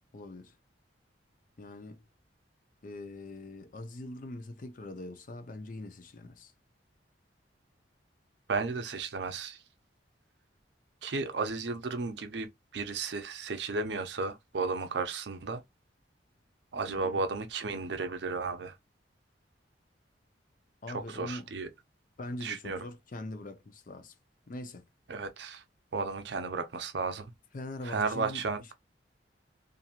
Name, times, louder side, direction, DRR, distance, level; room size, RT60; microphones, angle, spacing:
voice 1, 0.1-0.6 1.6-2.0 2.8-6.5 16.9-17.2 20.8-21.5 22.2-24.1 24.5-24.9 27.5-28.7, left 2 dB, 45° left, 0.5 m, -42 dB
voice 2, 8.5-9.6 11.0-15.6 16.7-18.7 20.9-21.7 22.4-22.8 25.1-25.6 25.9-27.3 27.9-28.7, right 4 dB, 65° right, 0.6 m, -34 dB
2.9 x 2.6 x 2.4 m
head